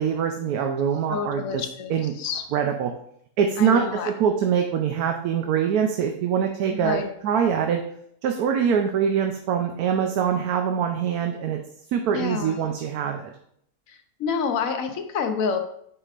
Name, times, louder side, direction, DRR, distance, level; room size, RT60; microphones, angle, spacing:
voice 1, 0.0-1.6 1.9-2.1 2.5-2.9 3.4-7.8 8.2-11.6 11.9-13.3, right 7 dB, 85° right, 4 dB, 1.1 m, -24 dB
voice 2, 1.1-2.4 3.6-4.1 6.7-7.1 12.1-12.7 13.9-15.6, left 6 dB, 70° left, 6 dB, 1.1 m, -28 dB
8.3 x 4.9 x 2.5 m, 0.69 s
omnidirectional pair, 1.6 m